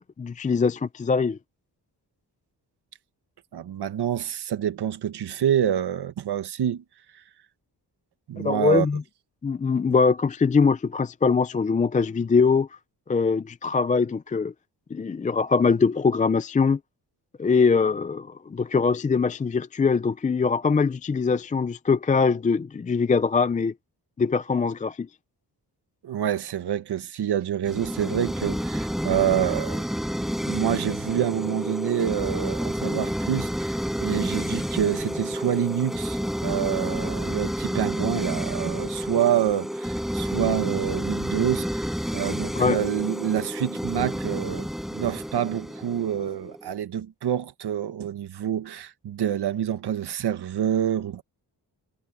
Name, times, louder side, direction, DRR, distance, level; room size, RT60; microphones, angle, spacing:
voice 1, 0.0-1.4 8.4-9.0 9.4-12.7 13.1-14.5 14.9-16.8 17.4-23.7 24.2-25.1 42.6-42.8, left 5 dB, 20° left, 0.4 m, -22 dB
voice 2, 3.5-6.8 7.1-7.2 8.3-8.9 26.0-29.9 30.2-51.2, right 10 dB, 80° right, 1.4 m, -27 dB
sound 1, 27.6-46.7, equal, ahead, 4.6 m, -30 dB
wide cardioid pair, 150°, 40 cm